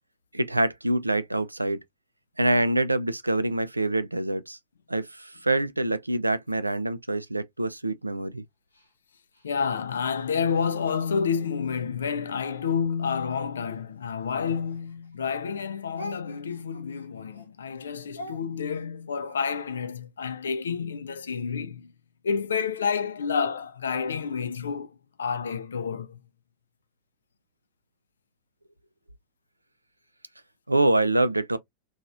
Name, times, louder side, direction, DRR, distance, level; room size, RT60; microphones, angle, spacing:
voice 1, 0.3-1.8 2.4-4.6 4.9-8.4 30.7-31.6, right 2 dB, 85° right, 0.3 m, -25 dB
Speech, 8.7-11.8 12.4-15.2 15.5-19.9, left 1 dB, 85° left, 0.8 m, -47 dB
voice 2, 9.4-21.9 22.2-26.2, left 6 dB, 70° left, 0.3 m, -29 dB
2.8 x 2.3 x 2.5 m
figure-of-eight pair, 90°, 0 cm